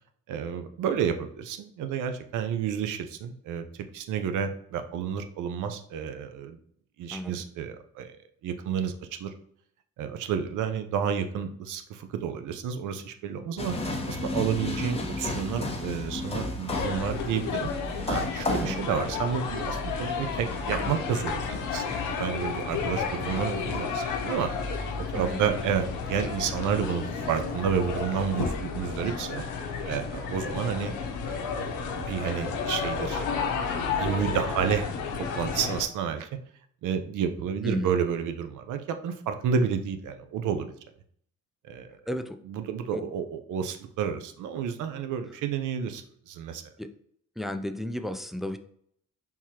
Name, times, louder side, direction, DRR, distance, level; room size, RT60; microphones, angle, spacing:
voice 1, 0.3-6.6 7.0-8.1 8.4-8.9 9.2-9.3 10.0-17.7 18.1-24.5 25.1-30.9 31.3-31.7 32.0-34.9 35.3-36.3 36.8-40.7 41.6-42.0 42.5-46.6, right 7 dB, 85° right, 8 dB, 0.6 m, -30 dB
voice 2, 7.1-7.4 18.6-18.8 25.1-25.4 37.6-38.0 42.1-42.4 42.9-43.0 46.8-46.9 47.4-48.6, left 1 dB, ahead, 8 dB, 0.3 m, -33 dB
sound 1, 13.6-28.3, left 2 dB, 20° left, 0.9 m, -36 dB
sound 2, 16.7-35.8, left 5 dB, 90° left, 0.7 m, -32 dB
4.7 x 3.6 x 2.8 m, 0.66 s
cardioid pair, 90°, 30 cm